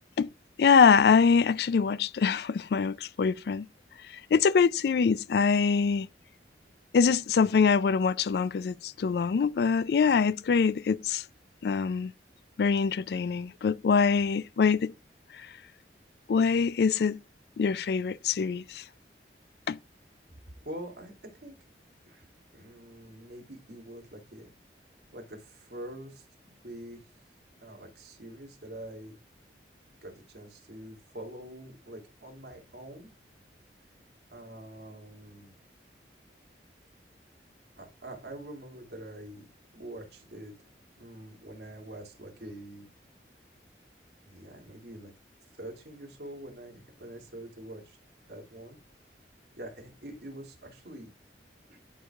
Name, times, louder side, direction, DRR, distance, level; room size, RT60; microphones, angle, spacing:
voice 1, 0.6-3.7 4.3-6.1 6.9-11.2 11.6-12.1 12.6-14.9 15.4-15.5 16.3-17.2 17.6-18.8 19.7-19.8, left 5 dB, 65° left, 0.3 m, -24 dB
voice 2, 20.6-21.6 22.1-24.5 25.1-27.0 27.6-29.2 30.0-33.1 34.3-35.5 37.8-39.5 39.7-40.5 41.0-42.9 44.2-45.1 45.5-48.0 48.3-48.8 49.6-51.1 51.7-51.8, right 1 dB, 70° right, 2.5 m, -45 dB
12.0 x 4.7 x 2.4 m
head